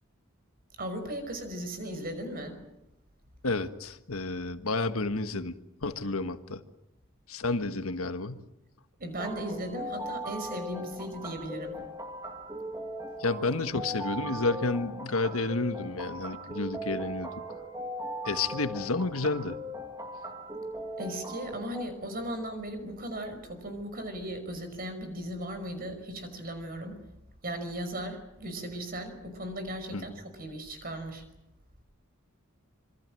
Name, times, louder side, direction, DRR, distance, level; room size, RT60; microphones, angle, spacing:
voice 1, 0.8-2.6 9.0-11.8 21.0-27.0 27.4-31.2, right 1 dB, 40° right, 8 dB, 5.5 m, -37 dB
voice 2, 3.4-5.5 5.8-6.6 7.3-8.4 13.2-17.3 18.2-19.6 29.9-30.0, left 3 dB, 75° left, 9 dB, 1.5 m, -30 dB
sound 1, 9.2-21.8, equal, 15° right, 2.3 m, -39 dB
26.5 x 24.0 x 7.7 m, 0.89 s
head